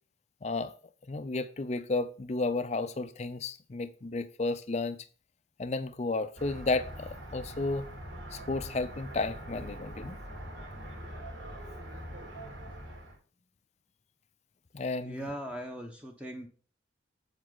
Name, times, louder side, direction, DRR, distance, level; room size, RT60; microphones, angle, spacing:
voice 1, 0.4-0.7 1.1-5.0 5.6-7.9 8.3-10.2 14.7-15.3, left 3 dB, 35° left, 0.5 m, -32 dB
sound 1, 6.4-13.1, equal, 80° right, 3.6 m, -43 dB
voice 2, 15.0-16.5, equal, 5° right, 0.9 m, -39 dB
7.7 x 7.3 x 3.9 m
head